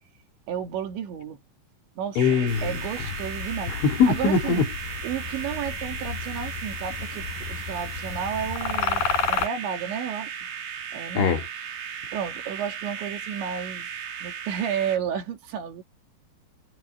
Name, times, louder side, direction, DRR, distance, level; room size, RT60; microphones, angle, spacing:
voice 1, 0.5-1.4 2.0-2.2 2.6-3.7 4.1-4.6 5.0-10.4 10.9-11.3 12.1-13.9 14.2-15.8, right 8 dB, 80° right, 5.0 m, -32 dB
sound 1, 2.1-15.0, right 7 dB, 55° right, 3.6 m, -36 dB
voice 2, 2.2-3.1 3.7-4.7 11.2-11.5, left 5 dB, 85° left, 5.2 m, -22 dB
sound 2, 2.5-9.5, left 5 dB, 50° left, 4.4 m, -32 dB
omnidirectional pair, 5.2 m